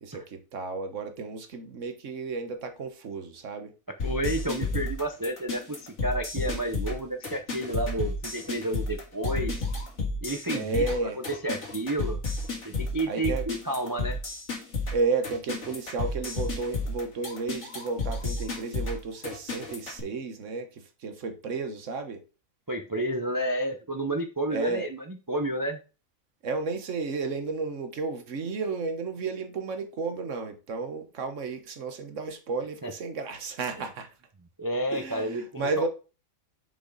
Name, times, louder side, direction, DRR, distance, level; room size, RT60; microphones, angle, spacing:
voice 1, 0.0-3.7 10.5-11.2 13.1-13.5 14.9-22.2 24.5-24.9 26.4-34.1 34.9-35.9, right 4 dB, 60° right, 1.5 m, -32 dB
sound 1, 4.0-20.0, left 3 dB, 55° left, 2.2 m, -32 dB
voice 2, 4.0-9.5 10.2-11.1 11.4-12.2 12.6-14.2 22.7-25.8 32.8-32.9 34.6-35.9, right 1 dB, 30° right, 0.4 m, -31 dB
6.9 x 5.4 x 4.1 m
omnidirectional pair, 1.5 m